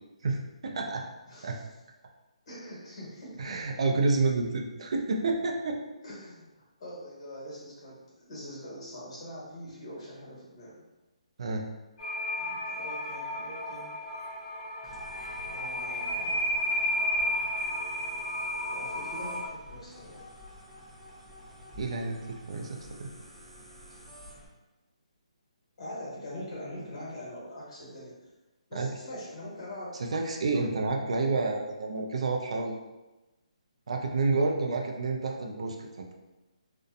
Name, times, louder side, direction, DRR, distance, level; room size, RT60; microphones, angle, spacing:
voice 1, 0.2-1.0 1.4-1.6 3.4-5.8 11.4-11.6 21.8-23.1 28.7-28.9 30.0-32.7 33.9-36.1, right 3 dB, 60° right, 2 dB, 0.4 m, -29 dB
voice 2, 1.3-1.6 2.5-3.6 6.0-10.7 12.4-13.9 15.5-16.5 18.7-20.3 25.8-28.2 28.7-30.0, left 1 dB, 50° left, -5 dB, 1.2 m, -43 dB
sound 1, 12.0-19.5, left 1 dB, 70° left, 0.8 m, -32 dB
sound 2, 14.8-24.5, left 1 dB, ahead, 0.5 m, -50 dB
2.6 x 2.1 x 2.4 m, 1.1 s
hypercardioid pair, 155°, 4 cm